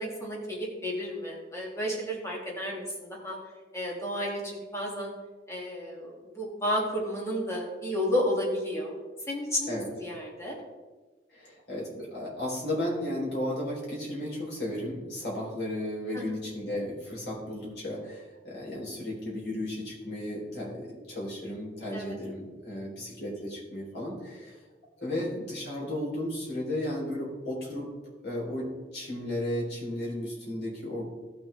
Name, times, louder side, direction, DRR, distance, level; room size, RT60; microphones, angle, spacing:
voice 1, 0.0-3.4 3.7-5.1 5.5-8.9 9.3-9.7 10.0-10.6 16.1-16.3 21.9-22.2, equal, 15° left, -3 dB, 2.3 m, -32 dB
voice 2, 11.3-24.6 25.0-27.9 28.2-28.7 28.9-31.1, left 1 dB, 70° left, -3 dB, 3.6 m, -34 dB
16.5 x 6.1 x 3.3 m, 1.3 s
head